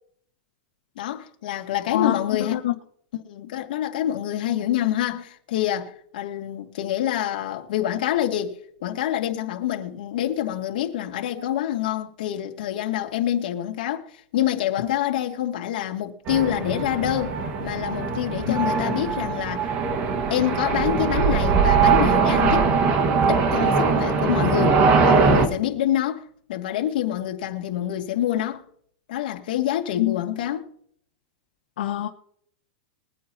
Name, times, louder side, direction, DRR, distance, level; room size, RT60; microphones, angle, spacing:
voice 1, 1.0-2.6 3.1-19.7 20.3-22.7 23.3-28.6 29.1-30.7, left 11 dB, 70° left, 2.3 m, -26 dB
voice 2, 1.9-2.7 18.5-18.6 30.0-30.2 31.8-32.1, left 14 dB, 85° left, 1.5 m, -25 dB
sound 1, 16.3-25.5, right 5 dB, 35° right, 1.7 m, -21 dB
22.5 x 9.4 x 2.9 m
supercardioid pair, 160°, 5 cm